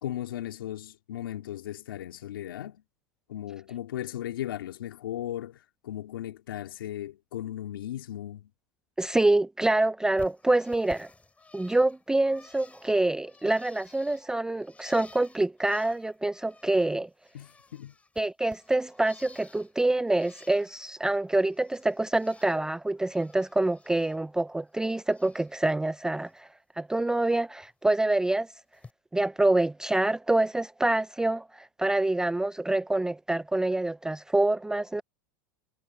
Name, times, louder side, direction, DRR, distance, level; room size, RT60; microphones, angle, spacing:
voice 1, 0.0-2.8 3.3-8.5 17.3-17.9, left 12 dB, 85° left, 2.4 m, -37 dB
voice 2, 9.0-11.1 11.5-17.1 18.2-26.5 26.8-28.5 29.1-35.0, right 2 dB, 5° right, 0.5 m, -26 dB
Bird, 10.2-17.0 17.2-19.7 20.1-20.9 21.2-22.6 22.9-24.2 24.5-25.5 25.9-26.3 27.6-27.7 28.7-28.9, left 3 dB, 10° left, 4.5 m, -54 dB
supercardioid pair, 120°, 11 cm